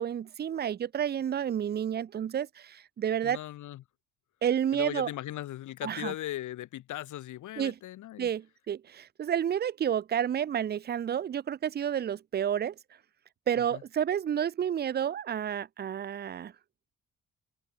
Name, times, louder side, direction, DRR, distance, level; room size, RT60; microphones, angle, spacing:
voice 1, 0.0-3.4 4.4-5.1 5.8-6.1 7.6-7.7 8.2-12.7 13.5-16.5, right 9 dB, 35° right, 0.5 m, -30 dB
voice 2, 3.2-3.8 4.7-8.3 13.7-13.8, left 14 dB, 75° left, 1.8 m, -38 dB
cardioid pair, 90°, 30 cm